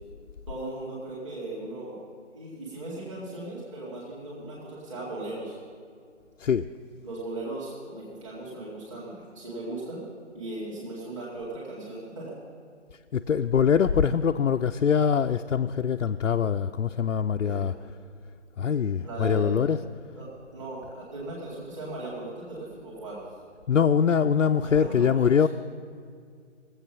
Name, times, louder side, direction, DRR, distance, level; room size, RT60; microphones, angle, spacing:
voice 1, 0.5-2.0 2.3-5.6 7.0-10.0 10.3-12.3 17.4-17.6 19.0-19.6 20.2-23.3 24.6-25.4, right 2 dB, 25° right, -7 dB, 2.2 m, -37 dB
voice 2, 13.1-17.7 18.6-19.8 23.7-25.5, left 7 dB, 85° left, 5 dB, 0.6 m, -23 dB
19.5 x 8.0 x 6.0 m, 2.1 s
figure-of-eight pair, 160°, 37 cm